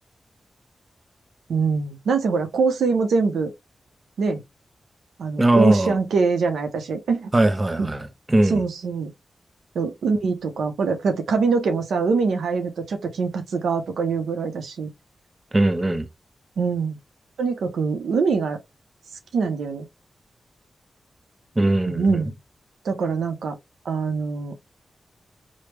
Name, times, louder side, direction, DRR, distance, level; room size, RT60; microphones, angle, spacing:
voice 1, 1.5-3.5 4.2-4.4 5.2-7.3 7.8-7.9 8.4-9.1 9.7-14.9 16.6-17.0 17.4-18.6 19.3-19.9 21.9-22.3 22.8-23.6 23.9-24.5, right 4 dB, 85° right, 0.5 m, -23 dB
voice 2, 5.4-6.0 7.3-8.6 15.5-16.1 21.6-22.2, right 1 dB, 30° right, 0.6 m, -20 dB
3.3 x 2.0 x 3.0 m
cardioid pair, 40°, 0 cm